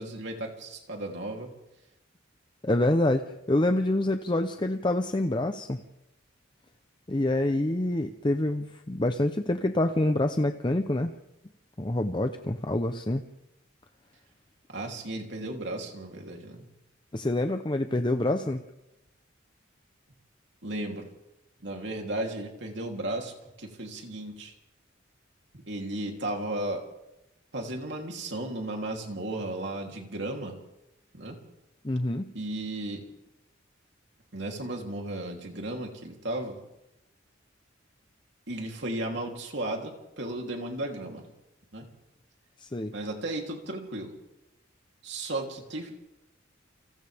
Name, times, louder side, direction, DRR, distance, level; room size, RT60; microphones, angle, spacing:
voice 1, 0.0-1.5 14.7-16.6 20.6-21.1 21.6-24.5 25.5-26.8 27.5-30.6 31.1-31.4 32.3-33.0 34.3-36.6 38.5-41.3 41.7-41.9 42.9-44.1 45.0-45.9, right 1 dB, 60° right, 1 dB, 3.3 m, -35 dB
voice 2, 2.6-5.8 7.1-11.1 11.8-13.2 17.1-18.6 31.8-32.3 42.6-42.9, left 1 dB, 25° left, 7 dB, 0.7 m, -26 dB
30.0 x 25.0 x 3.5 m, 0.91 s
head